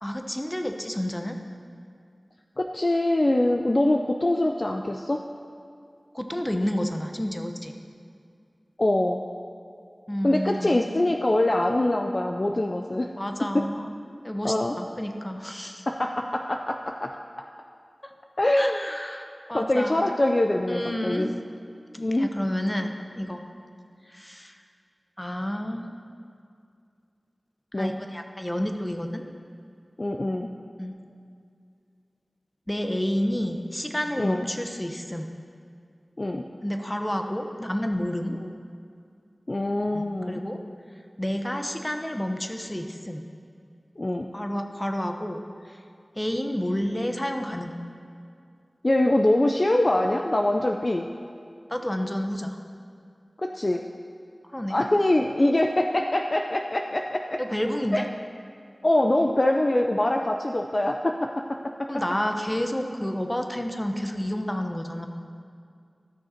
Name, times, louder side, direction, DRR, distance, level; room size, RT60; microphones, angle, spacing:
voice 1, 0.0-1.4 6.1-7.7 10.1-10.8 13.2-13.9 14.2-15.8 18.0-18.1 18.6-20.0 20.7-21.3 22.1-23.4 24.0-24.6 25.2-25.9 27.7-29.2 30.8-31.0 32.7-35.3 36.6-38.3 39.9-40.6 41.2-43.3 44.3-45.8 46.2-47.8 51.7-52.6 54.5-54.8 57.4-58.0 61.9-65.1, equal, 20° left, 5 dB, 0.9 m, -30 dB
voice 2, 2.6-5.2 8.8-9.2 10.2-13.1 13.5-13.6 14.4-14.8 15.9-17.1 18.4-18.8 19.5-21.3 22.0-22.3 27.7-27.9 30.0-30.5 34.2-34.5 36.2-36.5 39.5-40.4 44.0-44.3 48.8-51.1 53.4-53.8 54.7-57.4 57.9-58.0 58.8-61.9, left 1 dB, 45° left, 3 dB, 0.4 m, -24 dB
13.5 x 6.4 x 4.4 m, 2.4 s
wide cardioid pair, 40°, 0 cm